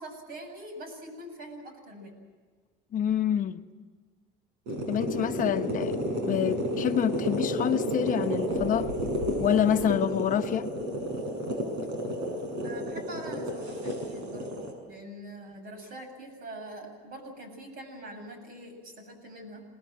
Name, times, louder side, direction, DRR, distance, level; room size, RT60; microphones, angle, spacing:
voice 1, 0.0-2.1 5.2-5.6 12.6-19.6, right 1 dB, 55° right, 7.9 m, -44 dB
voice 2, 2.9-3.6 4.9-6.0 6.2-8.9 9.4-10.7, left 10 dB, 45° left, 1.0 m, -27 dB
sound 1, 4.7-14.7, equal, 75° right, 6.7 m, -31 dB
28.5 x 19.5 x 7.7 m
cardioid pair, 130°, 19 cm